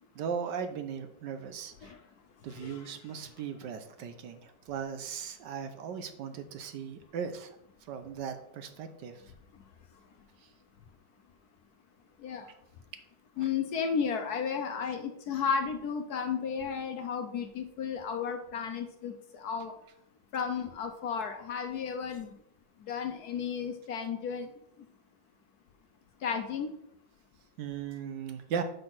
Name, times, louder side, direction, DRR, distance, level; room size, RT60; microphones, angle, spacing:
voice 1, 0.1-1.9 2.4-7.5 7.9-9.2 13.4-13.5 27.6-28.6, right 7 dB, 70° right, 8 dB, 1.3 m, -38 dB
voice 2, 13.4-19.7 20.3-22.3 22.9-24.5 26.2-26.7, left 6 dB, 65° left, 6 dB, 1.1 m, -33 dB
5.9 x 5.3 x 6.0 m, 0.76 s
omnidirectional pair, 2.1 m